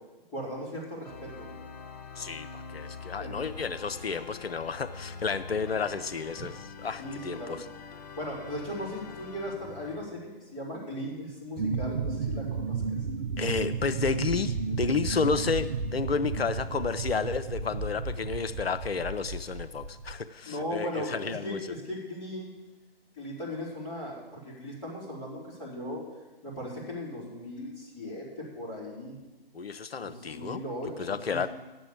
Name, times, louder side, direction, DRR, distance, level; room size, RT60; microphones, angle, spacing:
voice 1, 0.3-1.5 3.2-3.4 7.0-7.6 8.2-12.8 20.4-22.5 23.2-26.0 26.4-29.2 30.0-31.4, left 1 dB, 20° left, -6 dB, 3.8 m, -37 dB
Organ, 1.0-10.2, left 5 dB, 45° left, 0.8 m, -44 dB
voice 2, 2.2-6.5 6.8-7.6 13.4-21.6 29.5-30.6 31.0-31.5, left 5 dB, 90° left, 13 dB, 0.5 m, -31 dB
sound 1, 11.6-20.1, right 4 dB, 50° right, 0.7 m, -33 dB
9.2 x 7.7 x 8.6 m, 1.2 s
figure-of-eight pair, 135°, 30 cm